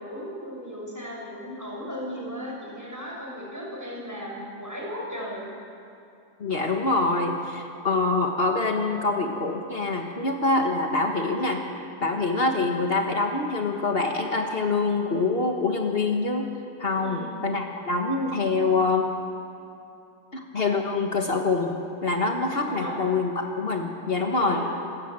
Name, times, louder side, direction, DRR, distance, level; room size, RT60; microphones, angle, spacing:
voice 1, 0.0-5.5 17.0-17.3 22.6-22.9 24.3-24.6, equal, 5° right, -3 dB, 6.1 m, -36 dB
voice 2, 6.4-11.6 12.0-16.5 16.8-19.1 20.3-24.6, left 3 dB, 90° left, 2 dB, 0.5 m, -25 dB
26.5 x 14.0 x 8.9 m, 2.7 s
omnidirectional pair, 3.7 m